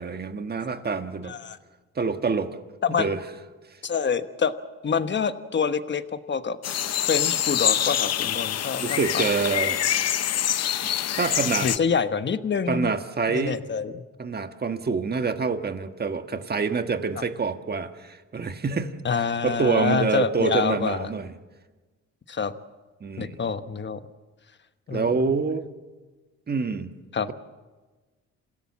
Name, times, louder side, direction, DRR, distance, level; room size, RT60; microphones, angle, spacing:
voice 1, 0.0-1.3 1.9-2.6 3.0-3.2 8.8-9.8 10.8-11.7 12.7-13.6 14.2-18.9 19.4-21.3 23.0-23.4 24.9-25.7 26.5-26.9, right 5 dB, 30° right, 8 dB, 1.6 m, -26 dB
voice 2, 1.2-1.6 2.8-3.1 3.8-4.5 4.8-6.6 7.1-9.2 11.6-12.9 13.3-14.0 17.2-17.3 19.0-21.1 22.3-22.5 23.2-24.0 24.9-25.3 27.1-27.3, left 6 dB, 35° left, 11 dB, 1.2 m, -26 dB
sound 1, 6.6-11.8, left 11 dB, 55° left, 0.8 m, -25 dB
27.5 x 16.5 x 7.4 m, 1.3 s
cardioid pair, 90°, 30 cm